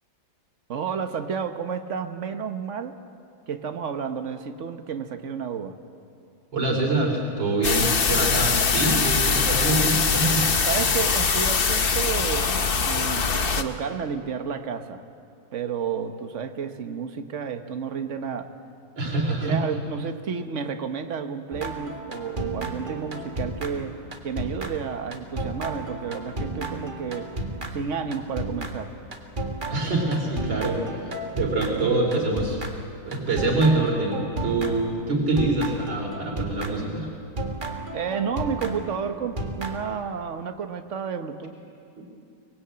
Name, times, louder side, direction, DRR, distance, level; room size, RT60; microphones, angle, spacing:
voice 1, 0.7-2.9 3.5-5.8 10.7-15.0 15.5-18.5 19.0-27.3 27.7-28.9 37.9-41.5, right 6 dB, 45° right, 7 dB, 1.4 m, -31 dB
voice 2, 6.5-10.5 19.0-19.6 29.7-32.6 33.1-37.1, right 2 dB, 75° right, 0 dB, 4.0 m, -25 dB
sound 1, 7.6-13.6, left 5 dB, 40° left, 0.9 m, -22 dB
sound 2, 21.5-37.0 37.4-39.8, right 2 dB, 25° right, 1.8 m, -33 dB
24.0 x 21.0 x 8.8 m, 2.5 s
omnidirectional pair, 2.0 m